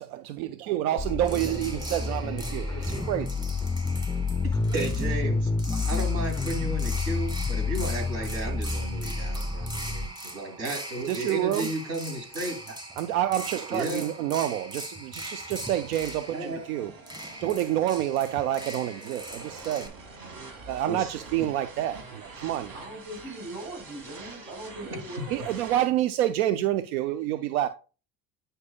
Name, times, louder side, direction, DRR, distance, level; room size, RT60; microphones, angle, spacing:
voice 1, 0.0-3.3 11.1-11.7 13.0-16.9 17.4-20.0 20.7-22.7 25.3-27.7, right 12 dB, 85° right, 0.5 m, -28 dB
sound 1, 1.0-10.1, left 4 dB, 10° left, 0.3 m, -29 dB
voice 2, 1.1-3.1 4.4-12.7 13.7-14.1 16.3-16.6 19.0-21.1 21.4-21.5 24.8-25.5, right 1 dB, 65° right, 3.2 m, -35 dB
sound 2, 1.2-19.9, right 1 dB, 10° right, 2.0 m, -40 dB
sound 3, 15.6-25.9, right 3 dB, 50° right, 2.3 m, -46 dB
voice 3, 22.7-25.4, right 1 dB, 30° right, 4.1 m, -40 dB
9.6 x 5.4 x 2.4 m
hypercardioid pair, 70°, 42 cm